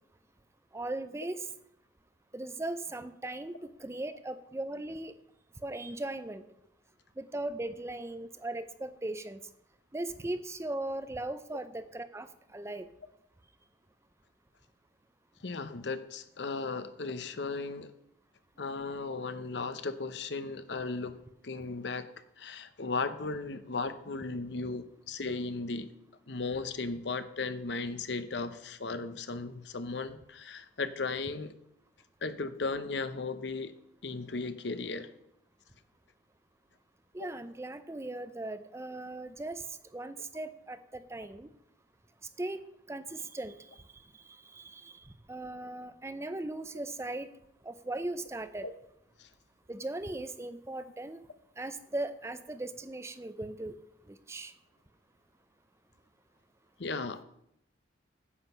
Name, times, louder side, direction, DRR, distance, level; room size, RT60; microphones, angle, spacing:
voice 1, 0.7-1.5 2.3-3.5 3.8-5.1 5.6-6.4 7.2-9.4 9.9-12.9 37.1-39.6 39.9-41.5 42.4-42.6 42.9-43.6 44.5-47.3 47.6-48.7 49.7-51.2 51.6-53.7 54.1-54.5, right 2 dB, 15° right, 11 dB, 0.5 m, -38 dB
voice 2, 15.4-17.9 18.6-22.1 22.4-25.9 26.3-31.5 32.2-33.7 34.0-35.1 37.2-37.3 48.6-48.7 49.2-49.3 56.8-57.2, left 3 dB, 70° left, 11 dB, 0.8 m, -36 dB
9.7 x 8.0 x 5.5 m, 0.77 s
head